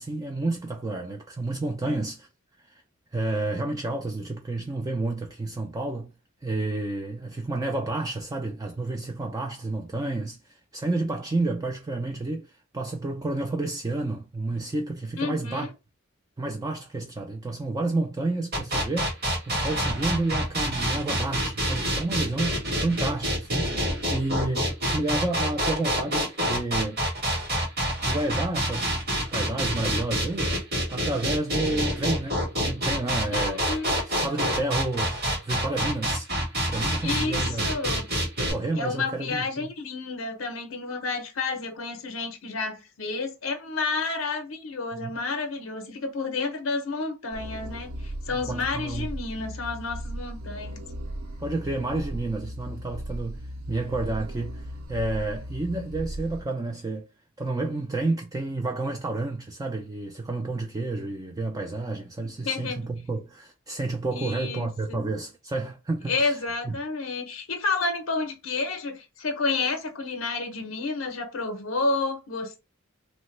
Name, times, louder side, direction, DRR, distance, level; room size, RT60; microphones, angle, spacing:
voice 1, 0.0-2.3 2.7-2.8 3.1-6.1 6.4-12.5 12.7-15.7 16.4-27.0 28.0-28.9 29.3-30.6 30.9-36.3 36.7-37.7 38.4-39.7 44.9-45.1 48.3-49.1 51.4-57.1 57.4-66.8, right 2 dB, 20° right, 0.3 m, -30 dB
voice 2, 15.2-15.7 33.3-33.9 37.0-38.1 38.7-50.8 62.4-62.9 64.1-65.0 66.1-72.6, left 3 dB, 70° left, 0.6 m, -30 dB
sound 1, 18.5-38.5, equal, 50° right, 1.7 m, -27 dB
sound 2, 47.3-56.4, equal, 85° right, 0.5 m, -37 dB
3.1 x 2.1 x 3.1 m
head